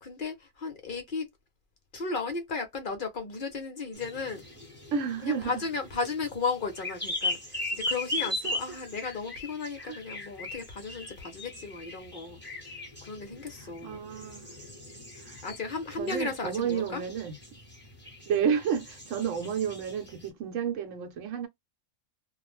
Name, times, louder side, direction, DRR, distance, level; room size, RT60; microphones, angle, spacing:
voice 1, 0.0-1.3 1.9-4.4 5.2-12.7 13.0-14.2 15.4-17.0 18.3-18.4 19.2-19.4, left 4 dB, 50° left, 0.7 m, -35 dB
sound 1, 3.9-20.3, left 2 dB, 10° left, 0.9 m, -39 dB
voice 2, 4.9-5.5 8.4-8.5 9.8-10.0 13.8-14.5 15.2-15.4 16.0-17.3 18.2-21.5, right 7 dB, 70° right, 1.1 m, -31 dB
2.5 x 2.0 x 3.1 m
omnidirectional pair, 1.4 m